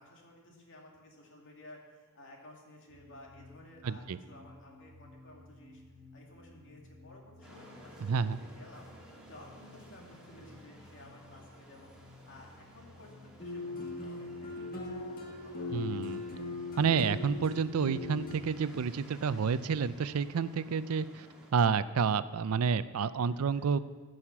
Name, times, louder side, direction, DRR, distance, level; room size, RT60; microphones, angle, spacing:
voice 1, 0.0-5.8 6.1-16.1 19.2-19.5 23.3-23.8, left 1 dB, 60° left, -1 dB, 2.4 m, -55 dB
sound 1, 2.9-20.0, left 2 dB, 55° right, 1.0 m, -56 dB
voice 2, 3.8-4.2 8.0-8.4 15.7-16.2 16.8-21.3 21.5-23.8, right 6 dB, 75° right, 15 dB, 0.4 m, -29 dB
sound 2, 7.4-21.5, equal, 5° right, 2.4 m, -56 dB
sound 3, 13.4-18.3, left 3 dB, 40° left, 1.5 m, -39 dB
15.5 x 6.5 x 6.0 m, 1.4 s
head